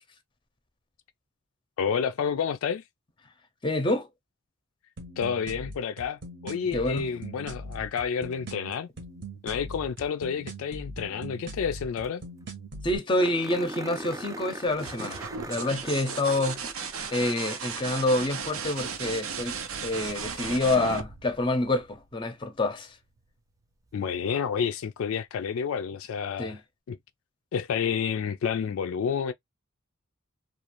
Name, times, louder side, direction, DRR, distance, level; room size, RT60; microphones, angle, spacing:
voice 1, 1.8-2.8 5.2-8.9 9.4-12.2 23.9-26.6 26.9-27.0 27.5-29.3, left 7 dB, 70° left, 0.3 m, -30 dB
voice 2, 3.6-4.1 6.7-7.1 12.8-16.6 17.1-19.6 19.8-23.0 26.4-26.6, left 2 dB, 25° left, 0.6 m, -27 dB
sound 1, 5.0-13.0, right 2 dB, 55° right, 0.9 m, -41 dB
sound 2, 11.8-11.9 12.0-12.1 12.5-12.6 13.2-18.6 20.9-21.0 23.9-24.0, right 1 dB, 15° right, 0.3 m, -41 dB
sound 3, 14.7-22.2 24.0-24.6, right 6 dB, 80° right, 0.6 m, -36 dB
2.5 x 2.3 x 2.9 m
head